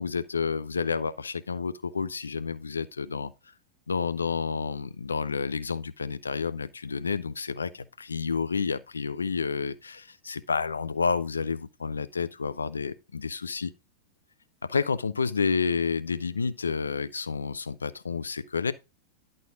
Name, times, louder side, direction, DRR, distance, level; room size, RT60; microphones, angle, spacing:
voice 1, 0.0-3.3 3.9-13.7 14.6-18.7, left 5 dB, 75° left, 0.6 m, -30 dB
11.0 x 4.1 x 4.9 m
figure-of-eight pair, 90°, 0 cm